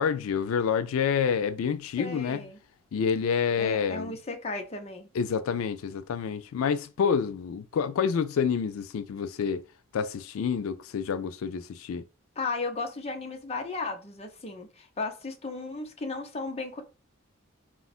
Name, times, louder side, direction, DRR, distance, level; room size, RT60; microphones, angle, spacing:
voice 1, 0.0-2.4 2.9-4.2 5.1-9.6 9.9-12.0, left 6 dB, 85° left, 0.4 m, -28 dB
voice 2, 2.0-2.6 3.6-5.1 12.4-16.8, left 3 dB, 30° left, 0.7 m, -35 dB
4.3 x 2.4 x 4.0 m
head